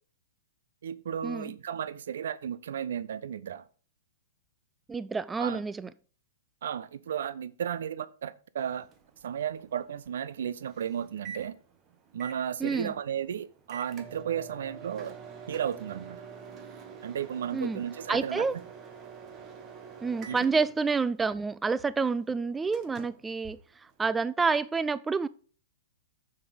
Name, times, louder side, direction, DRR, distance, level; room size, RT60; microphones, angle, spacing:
voice 1, 0.8-3.7 5.4-5.6 6.6-8.9 9.2-11.5 12.1-15.2 15.5-16.2 17.0-18.6 20.3-20.4, right 9 dB, 70° right, 0.6 m, -34 dB
voice 2, 4.9-5.9 12.6-12.9 17.5-17.8 18.1-18.6 20.0-25.3, right 4 dB, 10° right, 0.3 m, -29 dB
Microwave oven, 8.6-24.3, right 6 dB, 30° right, 1.5 m, -48 dB
6.9 x 6.6 x 5.1 m
hypercardioid pair, 120°, 0 cm